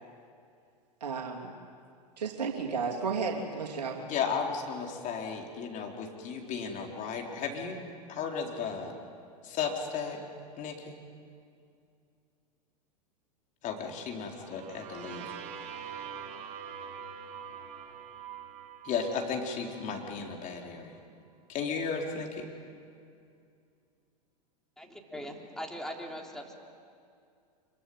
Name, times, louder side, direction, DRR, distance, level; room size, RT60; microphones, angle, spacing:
voice 1, 1.0-1.5 2.2-4.1, right 5 dB, 80° right, 0 dB, 3.1 m, -33 dB
voice 2, 4.0-7.8 8.1-8.9 9.4-10.2 10.6-11.0 13.6-15.3 18.8-21.0 21.5-22.5, left 6 dB, 40° left, 1 dB, 4.4 m, -34 dB
sound 1, 14.2-20.1, right 7 dB, 50° right, 2.5 m, -44 dB
voice 3, 24.8-26.5, equal, ahead, 1 dB, 3.7 m, -40 dB
25.5 x 24.0 x 9.6 m, 2.4 s
hypercardioid pair, 100°, 21 cm